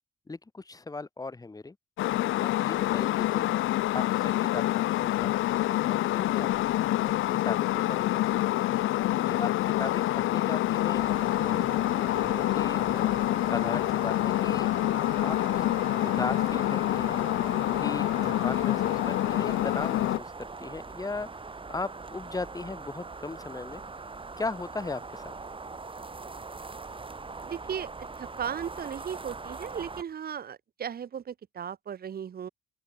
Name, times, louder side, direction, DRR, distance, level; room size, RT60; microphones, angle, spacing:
voice 1, 0.3-1.7 2.4-3.5 3.9-4.6 4.9-6.5 7.4-8.4 9.2-11.7 12.2-13.1 13.4-14.7 15.2-15.6 16.0-17.2 17.8-21.3 21.7-23.8 24.4-25.3, left 3 dB, 20° left, 1.5 m, -37 dB
sound 1, 2.0-20.2, left 15 dB, 85° left, 1.2 m, -27 dB
sound 2, 10.9-30.0, right 3 dB, 25° right, 6.7 m, -41 dB
voice 2, 27.4-32.5, right 8 dB, 50° right, 1.6 m, -36 dB
open air
cardioid pair, 90°, 20 cm